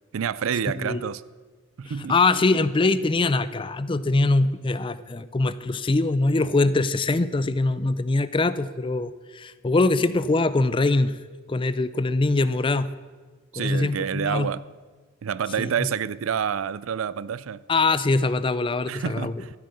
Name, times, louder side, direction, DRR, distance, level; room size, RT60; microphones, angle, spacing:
voice 1, 0.1-1.2 1.8-2.2 13.5-14.6 15.2-17.6 18.9-19.5, right 7 dB, 90° right, 0.4 m, -28 dB
voice 2, 1.9-11.2 11.5-12.9 13.6-14.5 15.6-15.9 17.7-19.4, left 3 dB, 25° left, 0.4 m, -23 dB
13.0 x 8.2 x 6.5 m
head